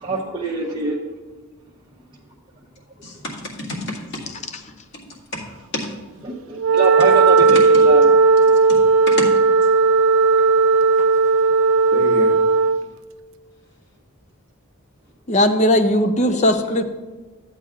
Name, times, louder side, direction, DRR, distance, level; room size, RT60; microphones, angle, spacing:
voice 1, 0.0-1.0 6.2-8.0 8.5-8.6 16.3-16.4, right 2 dB, 25° right, -6 dB, 0.8 m, -24 dB
voice 2, 3.0-4.3 5.3-5.4 5.7-5.9 8.7-8.8 9.1-9.3 11.9-12.4, left 1 dB, 55° left, -4 dB, 2.0 m, -28 dB
Wind instrument woodwind instrument, 6.6-12.9, right 4 dB, 65° right, 0.4 m, -15 dB
voice 3, 15.3-16.8, left 1 dB, 30° left, 8 dB, 0.5 m, -17 dB
13.5 x 8.1 x 2.4 m, 1.3 s
head